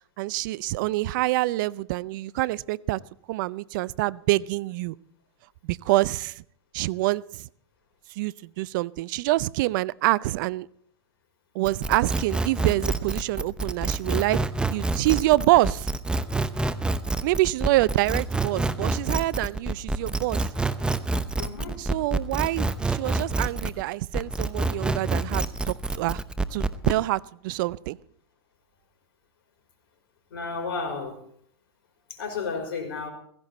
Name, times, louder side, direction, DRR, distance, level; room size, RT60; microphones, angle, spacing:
voice 1, 0.2-3.0 3.3-5.0 5.6-6.4 6.7-7.5 8.2-10.7 11.5-14.4 14.6-15.9 17.2-20.5 21.8-26.2 26.5-28.0, right 18 dB, 55° right, 22 dB, 0.5 m, -26 dB
sound 1, 11.6-23.8 24.1-27.0, right 2 dB, 5° right, 0.8 m, -27 dB
voice 2, 21.4-21.8 30.3-31.1 32.2-33.1, left 4 dB, 70° left, 4 dB, 4.9 m, -32 dB
16.0 x 16.0 x 4.2 m, 0.64 s
hypercardioid pair, 110°, 13 cm